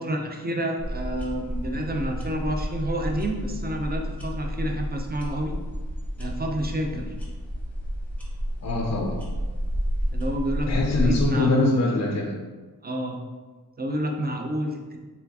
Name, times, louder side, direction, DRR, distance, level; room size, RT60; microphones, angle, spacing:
voice 1, 0.0-5.6 6.2-7.1 10.1-11.9 12.8-13.2 13.8-15.0, equal, 25° right, 2 dB, 0.5 m, -29 dB
sound 1, 0.8-11.3, equal, 5° left, 0.8 m, -30 dB
voice 2, 8.6-9.2 10.7-12.4, left 2 dB, 45° left, 0 dB, 0.5 m, -24 dB
4.2 x 3.3 x 2.8 m, 1.3 s
wide cardioid pair, 105°, 37 cm